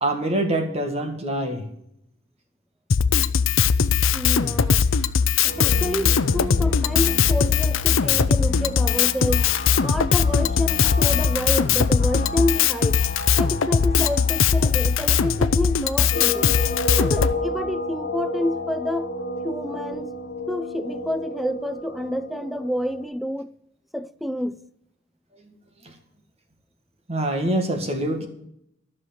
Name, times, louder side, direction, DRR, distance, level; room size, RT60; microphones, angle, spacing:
voice 1, 0.0-1.6 27.1-28.3, right 1 dB, 30° right, 1.9 m, -25 dB
Drum kit, 2.9-17.3, left 6 dB, 75° left, 0.6 m, -20 dB
voice 2, 4.1-4.8 5.4-9.5 9.8-13.0 13.4-16.5 17.0-19.1 19.4-20.1 20.5-23.5 23.9-24.6, left 1 dB, ahead, 0.4 m, -28 dB
sound 1, 5.5-23.0, left 1 dB, 50° left, 2.4 m, -33 dB
13.0 x 6.5 x 7.6 m
head